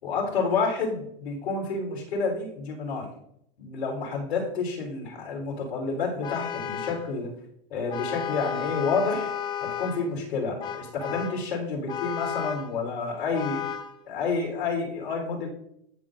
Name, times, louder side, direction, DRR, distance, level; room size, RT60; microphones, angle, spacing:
voice 1, 0.0-3.1 3.6-7.3 7.7-9.3 9.6-13.6 14.1-15.5, left 4 dB, 85° left, 0 dB, 3.7 m, -29 dB
Vehicle horn car horn honking, 6.2-7.1 7.9-10.1 10.6-11.4 11.9-12.7 13.3-14.0, left 9 dB, 15° left, 0.4 m, -33 dB
15.0 x 6.7 x 2.5 m, 0.74 s
supercardioid pair, 145°, 31 cm